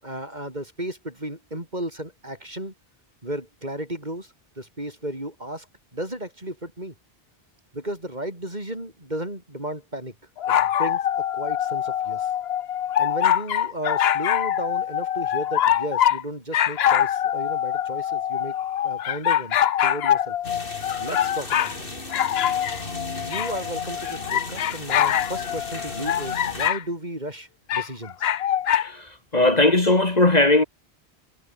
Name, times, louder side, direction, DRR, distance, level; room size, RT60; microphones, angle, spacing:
voice 1, 0.0-2.7 3.2-5.7 5.9-6.9 7.7-10.1 10.5-11.0 11.3-12.3 13.0-18.6 18.8-20.4 21.0-21.9 23.2-28.3, right 1 dB, 45° right, 7.0 m, -34 dB
sound 1, 10.4-16.2 16.5-21.7 22.1-26.8 27.7-28.9, left 10 dB, 85° left, 0.9 m, -24 dB
sound 2, 20.4-26.7, left 2 dB, 60° left, 3.8 m, -36 dB
voice 2, 29.3-30.6, left 2 dB, 40° left, 2.3 m, -18 dB
omnidirectional pair, 1.0 m